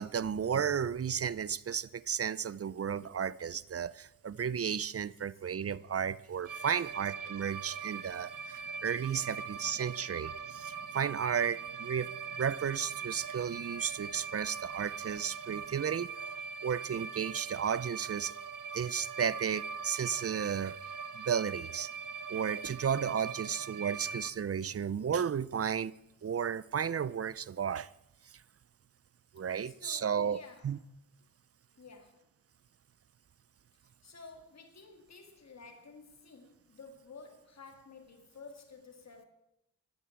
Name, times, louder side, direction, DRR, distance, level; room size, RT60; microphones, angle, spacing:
voice 1, 0.0-12.1 12.4-16.1 16.6-18.3 18.7-20.8 21.1-21.9 22.3-25.9 26.2-27.9 29.3-30.4 30.6-30.8, right 7 dB, 45° right, 0.5 m, -33 dB
sound 1, 6.5-24.3, right 6 dB, 75° right, 1.1 m, -42 dB
voice 2, 29.7-30.7 31.8-32.2 34.0-39.2, left 4 dB, 55° left, 2.3 m, -52 dB
14.0 x 9.2 x 8.5 m
wide cardioid pair, 80°, 32 cm